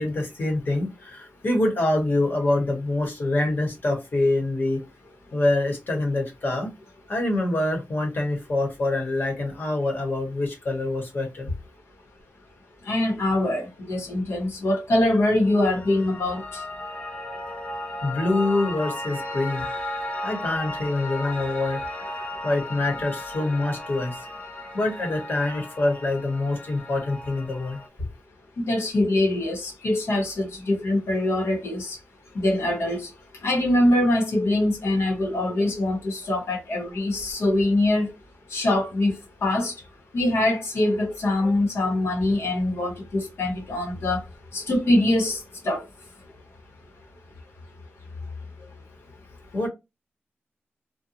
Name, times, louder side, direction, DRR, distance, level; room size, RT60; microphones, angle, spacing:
voice 1, 0.0-4.8 5.3-6.7 7.1-11.5 18.0-19.7 20.2-21.8 22.4-24.2 24.7-27.8 49.5-49.7, left 2 dB, 55° left, 1.1 m, -25 dB
voice 2, 12.9-16.4 28.6-32.0 32.3-33.1 33.4-38.1 38.5-39.1 39.4-39.7 40.1-44.2 44.5-45.4 45.6-45.8, left 1 dB, 85° left, 1.1 m, -23 dB
Piano, 15.5-27.9, left 1 dB, 30° left, 1.0 m, -35 dB
2.5 x 2.2 x 2.7 m
wide cardioid pair, 105°, 4 cm